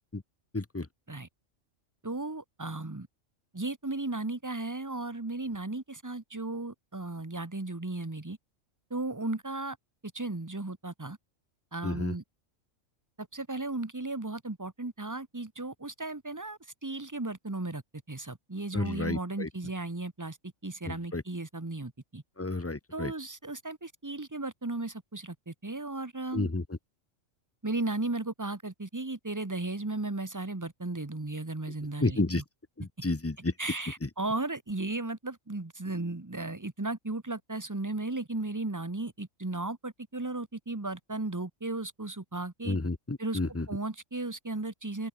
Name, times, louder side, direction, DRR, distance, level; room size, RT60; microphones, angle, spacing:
voice 1, 0.5-0.9 11.8-12.1 18.7-19.5 20.9-21.2 22.4-23.1 26.3-26.6 32.0-32.4 32.8-33.5 34.0-34.1 42.7-43.7, left 2 dB, 15° left, 0.6 m, -31 dB
voice 2, 2.0-3.1 3.5-8.4 8.9-9.8 10.0-11.2 11.7-12.2 13.2-17.8 18.1-20.4 20.6-22.2 22.9-26.5 27.6-32.4 33.6-42.8 43.2-45.1, right 2 dB, 15° right, 1.2 m, -35 dB
open air
omnidirectional pair, 1.3 m